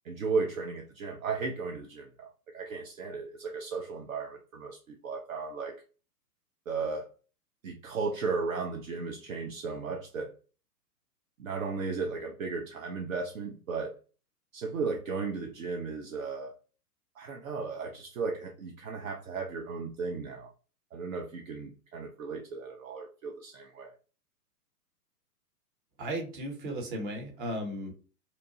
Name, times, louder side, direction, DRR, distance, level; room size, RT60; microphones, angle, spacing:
voice 1, 0.0-5.8 6.7-7.1 7.6-10.3 11.4-14.0 14.5-16.5 17.2-20.5 20.9-24.0, right 4 dB, 55° right, 0.5 m, -35 dB
voice 2, 26.0-27.9, right 1 dB, 30° right, 0.9 m, -35 dB
2.8 x 2.1 x 2.7 m
figure-of-eight pair, 115°, 50 cm